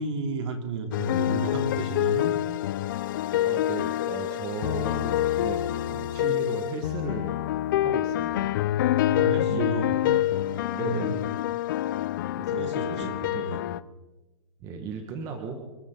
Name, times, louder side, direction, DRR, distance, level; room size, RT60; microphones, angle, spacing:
voice 1, 0.0-2.3 6.2-6.5 9.0-10.2 10.8-11.3 12.6-13.6, right 3 dB, 60° right, 4 dB, 3.1 m, -33 dB
sound 1, 0.9-13.8, left 13 dB, 40° left, 0.5 m, -26 dB
voice 2, 3.4-7.4 7.8-8.6 9.3-10.3 10.7-11.2 12.4-13.5 14.6-15.6, right 4 dB, 20° right, 4 dB, 1.6 m, -36 dB
28.0 x 12.5 x 3.8 m, 1.2 s
hypercardioid pair, 165°, 17 cm